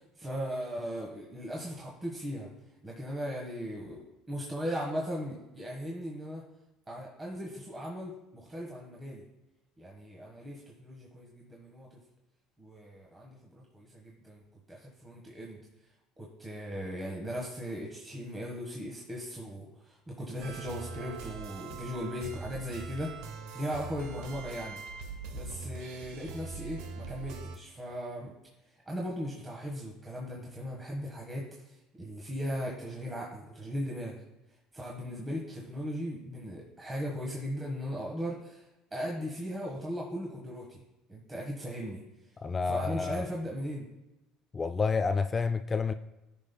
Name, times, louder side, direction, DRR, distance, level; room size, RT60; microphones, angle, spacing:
voice 1, 0.0-2.5 2.8-4.0 4.3-6.4 6.9-9.2 9.8-11.9 12.6-14.4 14.7-15.6 16.2-23.2 23.5-24.8 25.3-28.3 28.8-34.2 34.7-38.6 38.9-40.8 41.1-42.0 42.6-43.9, equal, 20° right, 1.4 m, -38 dB
sound 1, 20.4-27.6, right 4 dB, 75° right, 0.8 m, -42 dB
voice 2, 42.4-43.2 44.5-45.9, left 4 dB, 25° left, 0.3 m, -29 dB
14.0 x 5.3 x 2.2 m
supercardioid pair, 95°, 0 cm